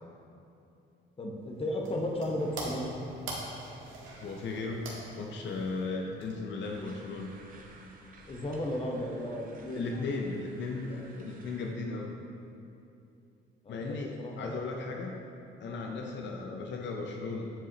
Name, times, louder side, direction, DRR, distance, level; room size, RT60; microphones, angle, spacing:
voice 1, 1.2-2.9 8.3-9.9 13.6-14.5 16.0-16.2, left 1 dB, 30° left, 0 dB, 0.8 m, -35 dB
sound 1, 1.4-6.7, right 2 dB, 85° right, 1.5 m, -44 dB
voice 2, 4.2-4.9 5.2-7.3 9.8-12.1 13.7-15.2 15.6-17.5, left 3 dB, 65° left, 1 dB, 0.6 m, -36 dB
sound 2, 6.6-11.7, right 3 dB, 45° right, 0.8 m, -55 dB
8.7 x 4.8 x 2.8 m, 2.7 s
cardioid pair, 90°, 20 cm